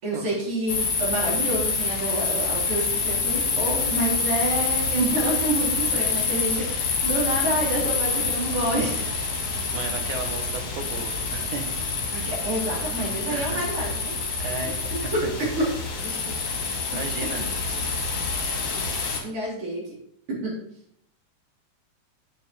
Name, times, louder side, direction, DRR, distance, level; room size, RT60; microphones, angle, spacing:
voice 1, 0.0-9.2 12.1-15.2 15.6-15.7 15.9-16.3 17.4-17.5 18.7-18.8 19.2-19.9 20.3-20.6, right 1 dB, 45° right, -5 dB, 4.5 m, -28 dB
sound 1, 0.7-19.2, left 4 dB, 60° left, 2.9 m, -27 dB
voice 2, 9.7-11.7 13.3-13.6 14.4-14.8 15.0-15.3 16.9-17.4, right 4 dB, 80° right, 4 dB, 2.8 m, -34 dB
8.1 x 7.0 x 5.3 m, 0.72 s
omnidirectional pair, 3.4 m